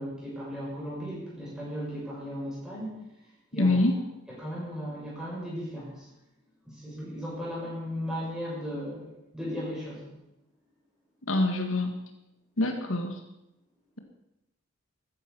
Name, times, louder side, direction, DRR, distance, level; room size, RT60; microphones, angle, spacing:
voice 1, 0.0-3.0 3.5-3.8 4.4-6.1 6.7-10.1, equal, 5° right, -6 dB, 7.0 m, -36 dB
voice 2, 3.6-4.0 11.2-11.9 12.6-13.2, left 2 dB, 85° left, 5 dB, 1.8 m, -25 dB
13.5 x 10.5 x 7.0 m, 0.88 s
head